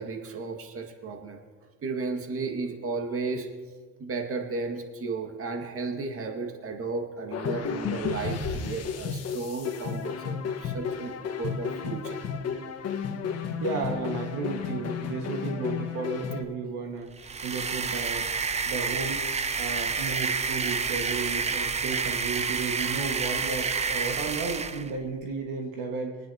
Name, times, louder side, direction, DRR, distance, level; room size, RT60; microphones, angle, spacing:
voice 1, 0.0-1.4 1.8-3.5 4.0-12.2, right 4 dB, 45° right, 3 dB, 2.0 m, -34 dB
sound 1, 7.3-16.4, left 6 dB, 50° left, 1.4 m, -32 dB
voice 2, 13.6-18.3 18.7-19.3 19.6-26.2, right 4 dB, 75° right, 1 dB, 1.7 m, -33 dB
sound 2, 17.2-24.9, right 5 dB, 20° right, 0.6 m, -29 dB
22.5 x 9.5 x 2.9 m, 1.5 s
supercardioid pair, 80°, 32 cm